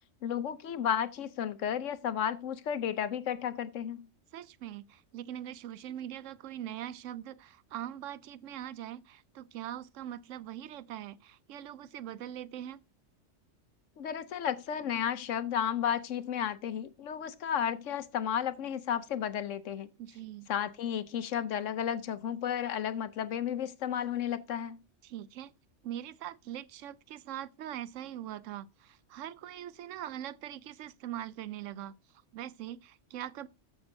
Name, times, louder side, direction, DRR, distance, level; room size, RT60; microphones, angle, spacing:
voice 1, 0.2-4.1 14.0-19.9 20.5-24.8, left 9 dB, 85° left, 1.1 m, -33 dB
voice 2, 4.3-12.8 20.0-20.5 25.0-25.5 25.8-31.9 32.3-33.5, right 11 dB, 85° right, 0.9 m, -42 dB
13.5 x 6.1 x 2.7 m
omnidirectional pair, 1.3 m